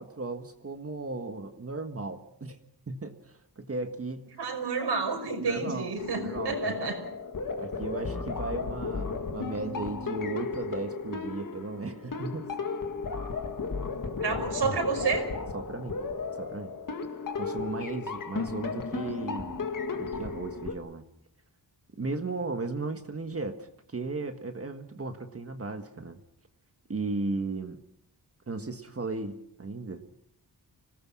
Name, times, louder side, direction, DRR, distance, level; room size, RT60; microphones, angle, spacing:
voice 1, 0.0-2.6 2.9-4.3 5.4-5.9 6.2-6.9 7.6-12.5 14.3-14.5 15.5-16.0 16.3-16.7 17.3-19.6 20.0-21.0 22.0-26.2 26.9-27.8 28.5-30.2, right 3 dB, 35° right, 6 dB, 1.6 m, -36 dB
voice 2, 4.4-7.0 14.2-15.3, right 4 dB, 85° right, 3 dB, 5.4 m, -30 dB
sound 1, 6.0-20.7, left 4 dB, 50° left, 2.2 m, -34 dB
26.0 x 18.0 x 6.2 m, 0.75 s
wide cardioid pair, 150°, 40 cm